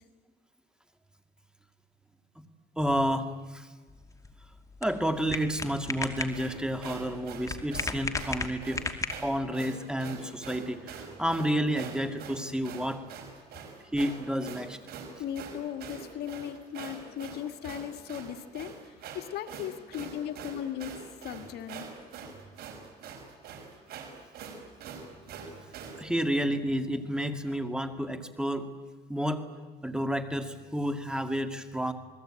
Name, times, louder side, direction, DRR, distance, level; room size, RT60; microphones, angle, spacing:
voice 1, 2.8-3.7 4.8-8.8 9.2-13.0 13.9-14.8 25.7-28.7 29.1-29.5 29.8-31.9, equal, 5° right, 8 dB, 2.2 m, -30 dB
sound 1, 3.9-9.5, left 3 dB, 20° left, 2.5 m, -36 dB
sound 2, 6.3-26.0, right 6 dB, 65° right, 5.9 m, -44 dB
voice 2, 15.2-18.7 19.1-21.0 21.2-21.9, left 10 dB, 70° left, 8 dB, 1.8 m, -37 dB
28.0 x 20.5 x 8.9 m, 1.3 s
cardioid pair, 110°, 17 cm